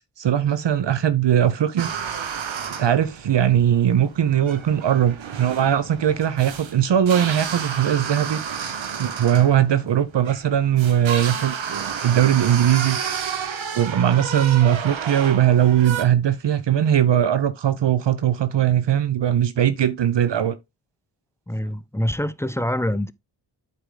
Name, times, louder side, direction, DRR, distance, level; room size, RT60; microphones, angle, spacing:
voice 1, 0.2-1.9 2.8-8.4 9.0-11.6 12.0-13.0 13.7-20.6, right 10 dB, 65° right, 0.8 m, -19 dB
sound 1, 1.8-16.0, right 7 dB, 80° right, 1.2 m, -31 dB
voice 2, 21.5-23.1, left 1 dB, 5° left, 0.5 m, -25 dB
8.3 x 4.8 x 3.8 m
cardioid pair, 50°, 46 cm